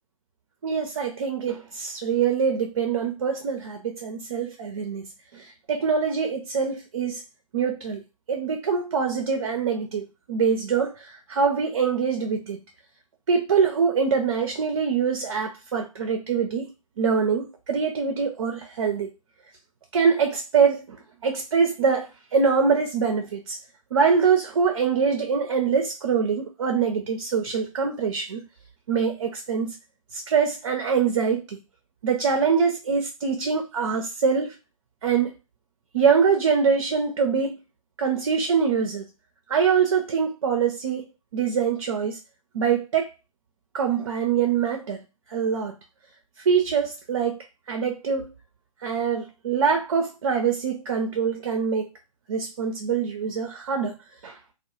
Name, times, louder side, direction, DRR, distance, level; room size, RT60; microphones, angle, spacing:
voice 1, 0.6-7.2 7.5-8.0 8.3-12.6 13.3-19.1 19.9-21.0 21.2-23.6 23.9-28.4 28.9-29.8 30.1-31.6 32.0-34.6 35.0-35.3 35.9-37.6 38.0-39.1 39.5-42.2 42.5-43.1 43.7-45.0 45.3-45.8 46.4-47.4 47.7-48.3 48.8-51.9 52.3-54.0 54.2-54.4, right 6 dB, 50° right, 0.5 m, -24 dB
2.2 x 2.0 x 2.9 m
figure-of-eight pair, 125°, 18 cm